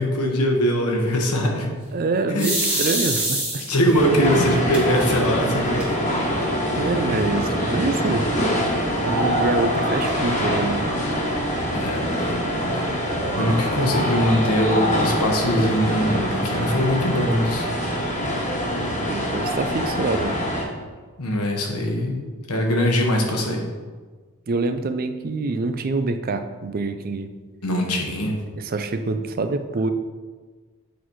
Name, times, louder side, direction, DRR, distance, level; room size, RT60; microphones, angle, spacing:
voice 1, 0.0-1.7 2.3-2.5 3.7-6.0 11.7-12.2 12.5-12.9 13.4-17.7 21.2-22.2 22.5-23.6 27.6-28.4, equal, 90° left, 1 dB, 1.3 m, -22 dB
voice 2, 1.9-3.6 6.8-8.3 9.0-10.9 19.0-20.4 24.5-27.3 28.6-29.9, right 3 dB, 40° right, 9 dB, 0.4 m, -25 dB
sound 1, 2.4-4.0 4.7-4.8 5.2-5.3 5.6-6.2, right 1 dB, 5° right, 1.6 m, -24 dB
sound 2, 3.9-20.6, equal, 35° left, 1.3 m, -24 dB
8.3 x 4.1 x 4.6 m, 1.4 s
head